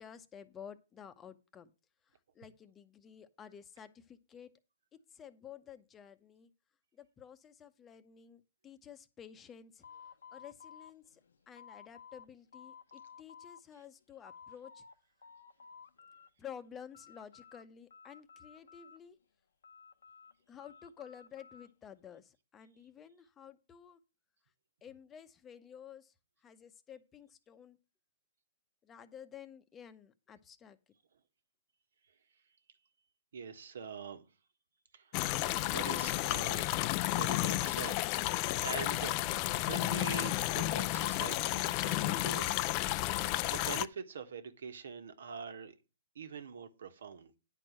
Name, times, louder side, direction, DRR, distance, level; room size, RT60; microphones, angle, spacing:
voice 1, 0.0-1.7 2.3-4.5 5.1-6.5 6.9-9.8 10.3-11.2 11.5-14.8 16.4-19.2 20.5-24.0 24.8-26.1 26.4-27.8 28.8-30.8, left 8 dB, 20° left, 0.8 m, -52 dB
sound 1, 9.8-12.3 12.5-13.6 14.0-14.9 15.2-16.3 16.6-17.6 17.9-19.2 19.6-21.7, left 6 dB, 85° left, 1.0 m, -55 dB
voice 2, 33.3-34.3 34.9-35.2 35.7-36.7 37.2-39.2 39.6-42.6 43.1-45.7 46.1-47.4, right 6 dB, 75° right, 1.6 m, -44 dB
sound 2, 35.1-43.9, left 16 dB, 35° left, 0.4 m, -32 dB
9.9 x 4.6 x 7.4 m
hypercardioid pair, 140°, 0 cm